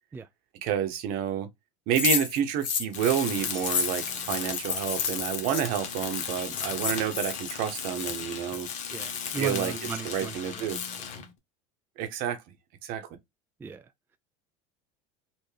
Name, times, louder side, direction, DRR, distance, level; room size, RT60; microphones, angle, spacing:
voice 1, 0.6-1.5 1.9-8.7 9.4-9.7 10.0-10.8 12.0-12.4 12.8-13.0, right 9 dB, 60° right, 0.9 m, -29 dB
sound 1, 1.9-5.6 6.2-6.3 6.4-7.5, left 6 dB, 75° left, 1.2 m, -30 dB
Tools, 2.9-11.3, left 7 dB, 45° left, 1.0 m, -36 dB
voice 2, 8.9-10.7 13.6-13.9, right 5 dB, 15° right, 0.3 m, -36 dB
3.5 x 2.5 x 3.2 m
hypercardioid pair, 90°, 16 cm